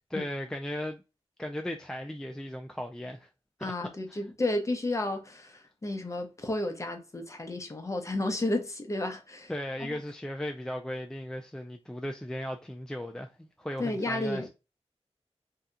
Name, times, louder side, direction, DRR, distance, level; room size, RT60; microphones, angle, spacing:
voice 1, 0.1-1.0 1.4-3.3 3.6-3.7 4.1-4.2 9.5-14.5, left 1 dB, 5° left, 0.3 m, -36 dB
voice 2, 3.6-9.5 9.8-10.0 13.8-14.5, left 2 dB, 30° left, 0.7 m, -32 dB
2.8 x 2.2 x 3.6 m
wide cardioid pair, 105°, 11 cm